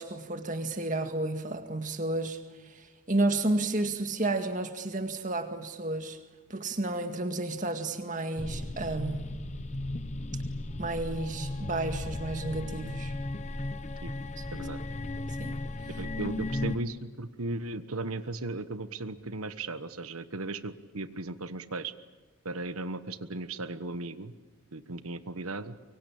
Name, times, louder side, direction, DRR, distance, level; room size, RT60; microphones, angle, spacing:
voice 1, 0.0-6.2 6.5-9.4 10.8-13.1 15.4-15.6, right 2 dB, 35° right, 2.0 m, -32 dB
sound 1, 8.4-16.8, left 2 dB, 30° left, 0.8 m, -35 dB
voice 2, 14.5-14.8 16.0-21.9 22.4-24.3 24.7-25.7, right 2 dB, 90° right, 1.3 m, -36 dB
25.0 x 23.0 x 8.7 m
head